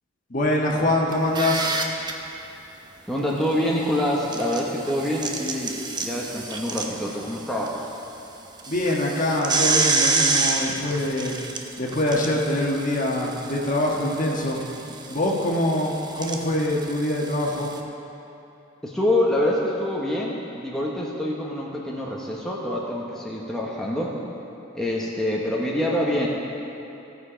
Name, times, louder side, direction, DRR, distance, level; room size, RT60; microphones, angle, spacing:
voice 1, 0.3-1.8 8.7-11.4 11.8-14.6 15.1-17.7, left 1 dB, 40° left, -2 dB, 1.4 m, -24 dB
sound 1, 1.1-2.1 4.1-7.7 8.0-8.1 8.6-17.8, right 3 dB, 20° right, 0.7 m, -28 dB
voice 2, 3.1-7.8 18.8-24.2 24.7-26.3, left 1 dB, ahead, -4 dB, 1.0 m, -26 dB
15.5 x 6.9 x 5.0 m, 2.9 s
head